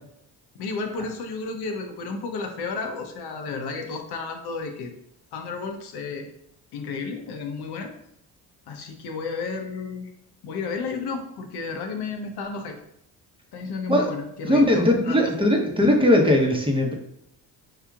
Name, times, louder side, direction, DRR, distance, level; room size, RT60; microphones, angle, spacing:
voice 1, 0.6-4.9 5.3-6.3 6.7-7.9 8.7-10.1 10.4-12.8 13.5-15.2 15.9-16.0, left 4 dB, 70° left, 4 dB, 0.7 m, -32 dB
voice 2, 14.4-16.9, left 1 dB, 10° right, 0 dB, 0.9 m, -19 dB
4.8 x 2.8 x 2.4 m, 0.76 s
supercardioid pair, 60°, 41 cm